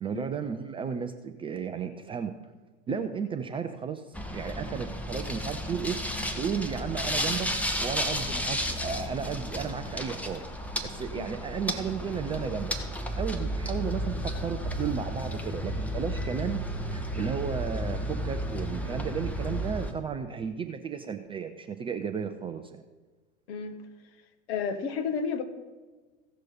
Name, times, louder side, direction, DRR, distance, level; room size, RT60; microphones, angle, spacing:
voice 1, 0.0-2.3 2.9-6.0 6.4-10.5 10.8-12.7 13.2-16.6 16.9-22.8, right 7 dB, 15° right, 7 dB, 0.4 m, -34 dB
sound 1, 4.1-19.9, equal, 5° left, 1.0 m, -33 dB
voice 2, 24.5-25.4, left 6 dB, 55° left, 7 dB, 1.4 m, -31 dB
16.0 x 6.3 x 4.2 m, 1.3 s
figure-of-eight pair, 85°, 37 cm